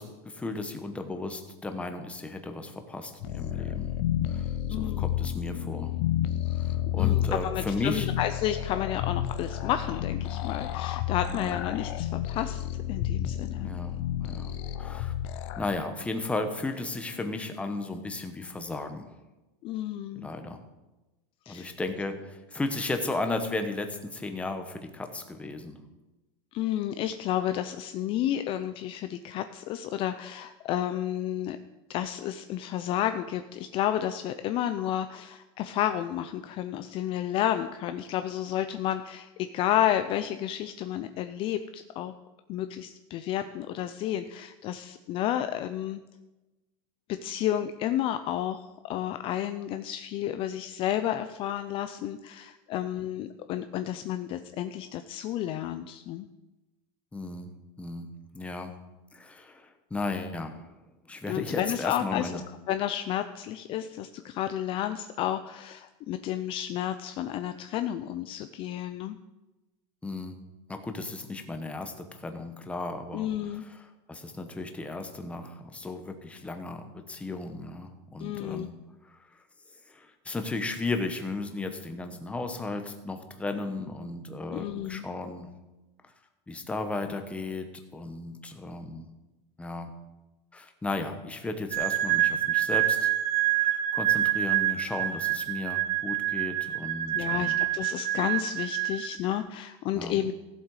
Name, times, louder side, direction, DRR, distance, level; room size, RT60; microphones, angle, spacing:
voice 1, 0.0-3.9 4.3-4.5 4.8-5.9 6.6-8.1 11.3-11.6 13.6-15.1 15.6-19.1 20.2-20.6 21.5-25.8 57.1-57.5 57.8-58.1 58.3-58.7 59.1-60.6 61.1-62.4 70.0-70.4 70.7-78.7 79.1-79.2 79.9-85.5 86.5-89.0 89.6-89.9 90.5-93.1 93.5-97.6 99.9-100.2, left 3 dB, 10° left, 6 dB, 1.1 m, -35 dB
sound 1, 3.2-15.7, left 11 dB, 65° left, 0.9 m, -31 dB
voice 2, 4.7-5.1 6.9-13.7 19.6-20.3 21.5-21.7 26.5-31.6 31.9-42.1 42.5-46.0 47.1-56.3 61.3-62.4 62.7-69.2 73.1-73.6 78.2-78.7 84.5-85.1 97.1-100.3, left 11 dB, 35° left, 9 dB, 0.5 m, -31 dB
sound 2, 91.7-99.4, right 13 dB, 50° right, 1.1 m, -27 dB
16.0 x 7.5 x 4.8 m, 1.1 s
supercardioid pair, 150°, 16 cm